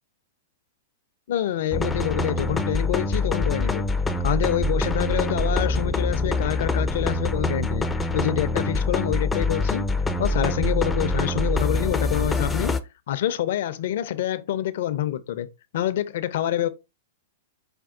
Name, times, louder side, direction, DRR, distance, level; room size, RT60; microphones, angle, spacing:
voice 1, 1.3-3.9 4.2-7.9 8.1-9.8 10.2-12.7 13.1-15.5 15.7-16.7, left 11 dB, 65° left, 0.5 m, -26 dB
sound 1, 1.7-12.8, left 2 dB, 10° left, 0.4 m, -25 dB
5.2 x 2.3 x 3.6 m
hypercardioid pair, 120°, 0 cm